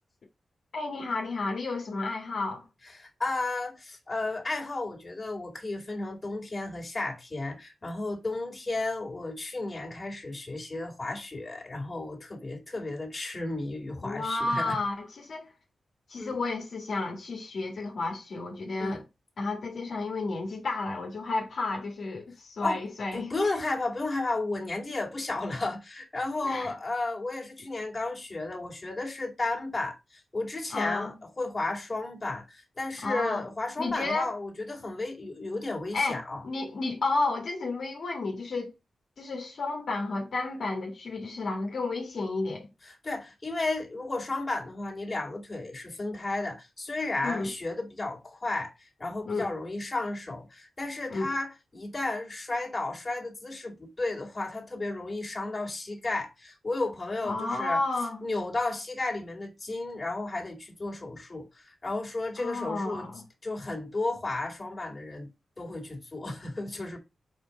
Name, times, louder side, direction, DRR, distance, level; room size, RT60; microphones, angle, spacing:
voice 1, 0.7-2.6 14.0-15.5 16.1-19.0 19.4-23.4 26.4-26.7 30.7-31.1 33.0-33.4 33.8-34.3 35.9-38.7 39.2-42.7 47.2-47.5 49.2-49.5 51.1-51.3 57.2-58.3 62.4-63.2, left 3 dB, 70° left, 1.7 m, -31 dB
voice 2, 2.9-14.8 16.2-16.4 18.8-19.0 22.6-22.8 23.1-36.4 42.8-57.8 58.2-63.1 63.4-65.3 65.6-67.0, left 2 dB, 35° left, 2.4 m, -33 dB
4.6 x 4.4 x 5.3 m
cardioid pair, 55°, 0 cm